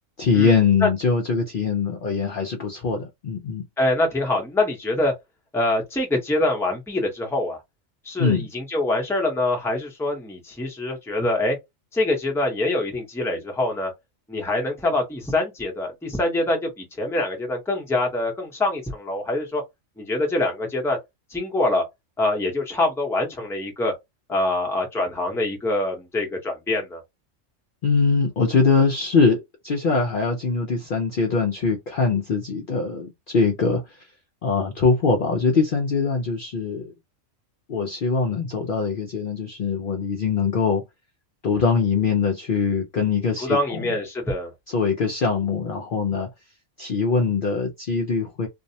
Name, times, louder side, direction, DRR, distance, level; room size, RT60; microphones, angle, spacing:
voice 1, 0.2-3.6 8.2-8.5 27.8-34.0 34.4-36.9 37.7-40.8 41.4-43.9 44.7-46.3 46.8-48.5, left 4 dB, 55° left, 0.6 m, -22 dB
voice 2, 3.8-5.1 5.5-7.6 8.0-11.6 11.9-13.9 14.3-19.6 20.0-21.0 21.3-21.8 22.2-23.9 24.3-27.0 43.4-44.5, left 2 dB, 5° left, 0.6 m, -24 dB
2.6 x 2.1 x 2.7 m
omnidirectional pair, 1.4 m